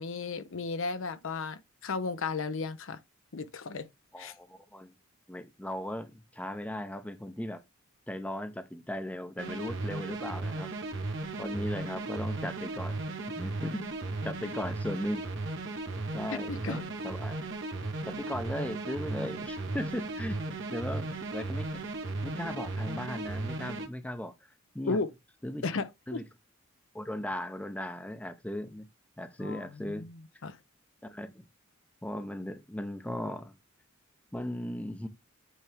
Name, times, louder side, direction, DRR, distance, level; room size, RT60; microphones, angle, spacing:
voice 1, 0.0-3.0 3.3-3.9 4.2-4.3 16.3-16.9 24.9-25.1 25.6-26.2 29.4-30.6, left 4 dB, 70° left, 0.7 m, -35 dB
voice 2, 4.1-4.9 5.3-7.6 8.1-10.7 11.4-13.0 13.3-13.9 14.2-15.3 16.1-17.4 18.0-21.8 22.2-24.5 24.7-25.0 25.4-25.6 26.1-26.2 26.9-28.9 29.2-30.1 31.0-31.5 32.0-33.5 34.3-35.1, left 1 dB, 5° left, 0.7 m, -37 dB
sound 1, 9.4-23.9, right 2 dB, 65° right, 1.3 m, -36 dB
8.4 x 3.4 x 3.4 m
head